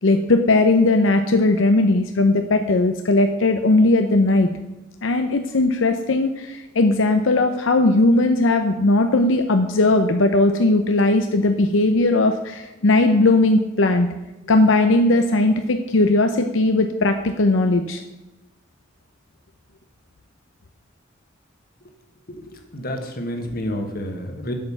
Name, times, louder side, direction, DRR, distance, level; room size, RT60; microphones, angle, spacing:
voice 1, 0.0-4.5 5.0-14.1 14.5-18.0, left 2 dB, 80° left, 6 dB, 0.7 m, -18 dB
voice 2, 22.7-24.5, equal, 50° left, 5 dB, 1.4 m, -29 dB
8.7 x 5.4 x 7.1 m, 1.0 s
head